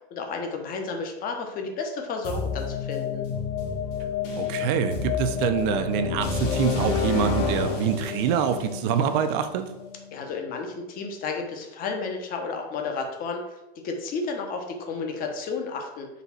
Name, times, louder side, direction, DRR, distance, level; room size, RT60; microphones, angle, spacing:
voice 1, 0.1-3.2 10.1-16.1, left 4 dB, 30° left, 3 dB, 0.6 m, -32 dB
sound 1, 2.2-10.1, left 5 dB, 55° left, 1.2 m, -29 dB
voice 2, 4.4-9.7, right 8 dB, 55° right, 8 dB, 0.5 m, -25 dB
4.0 x 2.3 x 4.1 m, 0.95 s
supercardioid pair, 145°, 30 cm